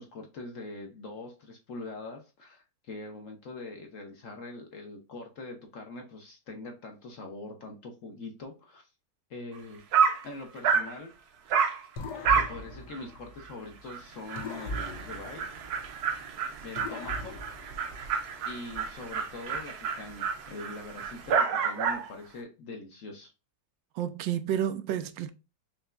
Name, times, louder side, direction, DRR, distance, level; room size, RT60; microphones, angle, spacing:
voice 1, 0.0-8.9 9.3-9.8 10.2-11.1 12.3-15.4 16.6-17.3 18.4-23.3, left 2 dB, 55° left, 1.0 m, -43 dB
Dog, 9.6-9.7 9.9-10.3 10.6-10.9 11.5-11.8 12.2-12.6 12.9-13.0 13.4-13.5 13.9-14.0 14.3-22.1, right 6 dB, 70° right, 1.1 m, -29 dB
sound 1, 12.0-13.9 14.4-16.2 16.8-18.5, left 2 dB, 70° left, 1.3 m, -40 dB
voice 2, 24.0-25.3, right 10 dB, 90° right, 1.3 m, -30 dB
5.5 x 2.9 x 2.4 m
omnidirectional pair, 1.9 m